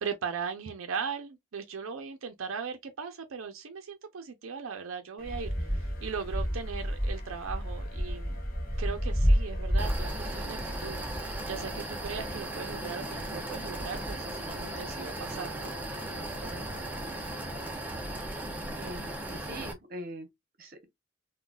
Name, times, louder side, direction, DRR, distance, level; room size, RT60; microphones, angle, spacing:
voice 1, 0.0-8.4 8.8-11.0 11.5-15.7, right 6 dB, 85° right, 0.5 m, -38 dB
sound 1, 5.2-17.7, left 2 dB, 45° left, 0.7 m, -51 dB
sound 2, 5.2-13.0 13.3-14.1 14.9-15.0 15.2-15.3, equal, 15° left, 1.0 m, -31 dB
sound 3, 9.8-19.7, right 1 dB, 10° right, 0.6 m, -37 dB
voice 2, 18.8-20.3 20.6-20.9, right 1 dB, 45° right, 0.9 m, -42 dB
3.8 x 2.2 x 2.3 m
head